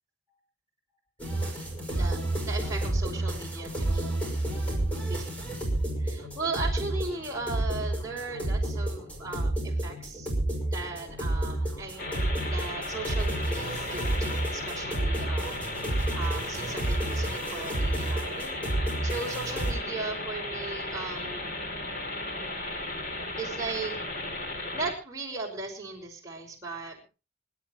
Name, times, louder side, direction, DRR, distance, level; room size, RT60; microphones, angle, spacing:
sound 1, 1.2-19.7, right 1 dB, 10° left, 5.6 m, -30 dB
voice 1, 1.9-4.1 5.1-5.2 6.0-10.3 10.7-15.7 16.0-18.6 19.0-21.6 22.4-24.0 24.7-27.0, right 3 dB, 15° right, -1 dB, 5.5 m, -37 dB
sound 2, 12.0-24.9, left 1 dB, 50° left, 3.3 m, -35 dB
26.0 x 12.5 x 3.1 m, 0.33 s
head